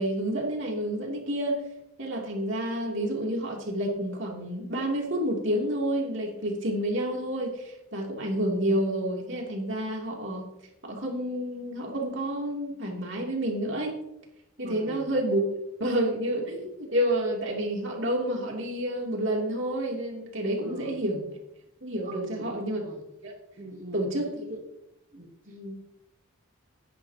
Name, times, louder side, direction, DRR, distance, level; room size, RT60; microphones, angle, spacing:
voice 1, 0.0-1.6 2.0-10.5 10.8-14.0 14.6-15.4 15.8-21.2 21.8-22.8 23.2-23.3 23.9-24.3 25.5-25.8, right 1 dB, 55° right, -1 dB, 2.9 m, -29 dB
voice 2, 14.6-15.1 20.6-20.9 22.0-23.0 23.6-24.1 24.5-24.6 25.1-25.8, right 1 dB, 35° right, -1 dB, 1.2 m, -41 dB
14.5 x 10.5 x 2.9 m, 0.87 s
head